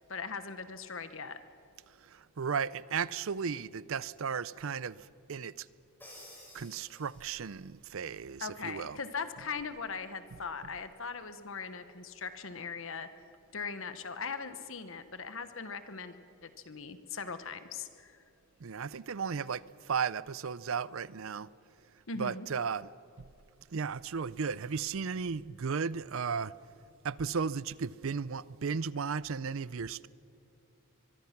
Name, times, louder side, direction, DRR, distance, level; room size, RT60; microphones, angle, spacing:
voice 1, 0.1-1.4 8.4-13.1 13.5-16.2 16.4-18.2 22.1-22.5, left 5 dB, 60° left, 1.2 m, -40 dB
voice 2, 2.0-5.7 6.5-9.0 18.6-21.5 22.2-22.9 23.7-26.5 27.0-30.1, right 6 dB, 65° right, 0.5 m, -35 dB
Crash cymbal, 6.0-7.7, left 1 dB, 10° left, 5.3 m, -53 dB
24.0 x 23.5 x 5.9 m
head